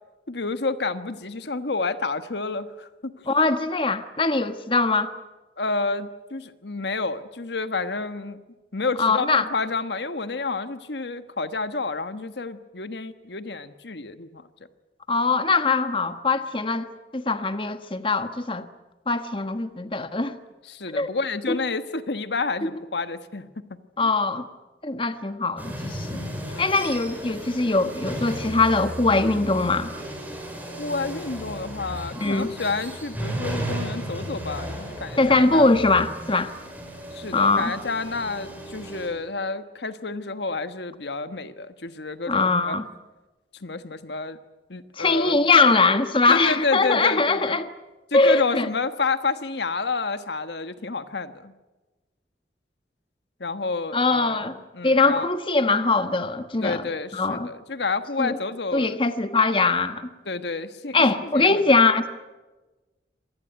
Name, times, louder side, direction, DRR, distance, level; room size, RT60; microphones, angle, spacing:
voice 1, 0.3-3.1 5.6-8.4 8.7-14.4 20.7-23.5 24.0-24.1 24.9-25.0 26.5-26.7 30.8-35.7 37.1-42.8 43.6-44.4 44.7-45.4 46.3-47.6 48.1-51.5 53.4-54.4 54.7-55.3 56.6-59.0 60.3-60.9 61.2-61.6, left 3 dB, 75° left, 1.3 m, -29 dB
voice 2, 3.3-5.1 9.0-9.5 15.1-16.9 17.1-18.7 19.1-20.4 20.9-21.1 21.5-21.6 22.6-22.8 24.0-24.5 24.8-26.3 26.6-29.9 32.2-32.5 35.2-36.5 37.3-37.7 42.3-42.9 45.0-47.7 48.1-48.7 53.9-54.6 54.8-56.8 57.1-57.5 58.2-58.4 58.7-60.1 60.9-62.1, left 3 dB, 30° left, 1.3 m, -22 dB
sound 1, 25.6-39.1, equal, 10° right, 5.8 m, -35 dB
26.0 x 19.0 x 9.3 m
head